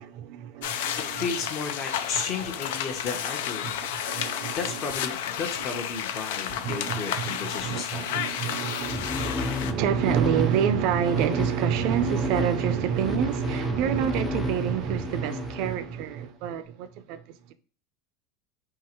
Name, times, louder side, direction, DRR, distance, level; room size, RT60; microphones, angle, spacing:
voice 1, 0.0-1.3 3.6-4.8 6.6-17.2 17.5-17.6, right 9 dB, 60° right, 0.5 m, -28 dB
sound 1, 0.6-9.7, left 9 dB, 85° left, 0.4 m, -32 dB
voice 2, 1.1-3.8 4.5-8.4, left 5 dB, 45° left, 0.9 m, -34 dB
sound 2, 8.8-16.2, left 4 dB, 15° left, 0.3 m, -33 dB
3.7 x 2.9 x 4.5 m
supercardioid pair, 135°, 0 cm